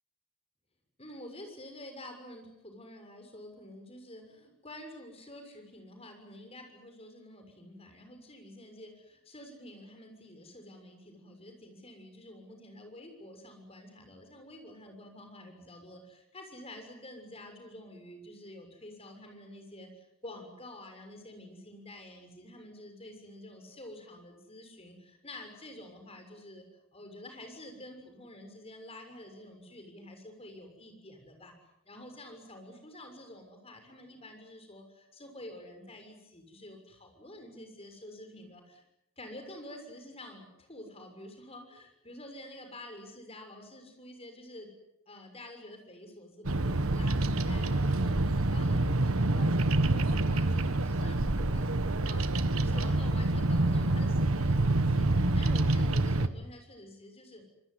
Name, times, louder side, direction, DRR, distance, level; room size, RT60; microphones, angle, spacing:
voice 1, 1.0-26.6 26.9-31.5 31.8-38.8 39.2-44.7 45.1-51.7 52.0-52.3 52.6-57.4, left 1 dB, 30° left, 5 dB, 6.6 m, -49 dB
Bird vocalization bird call bird song, 46.4-56.3, right 2 dB, 80° right, 1.5 m, -27 dB
26.5 x 21.5 x 9.7 m, 0.84 s
head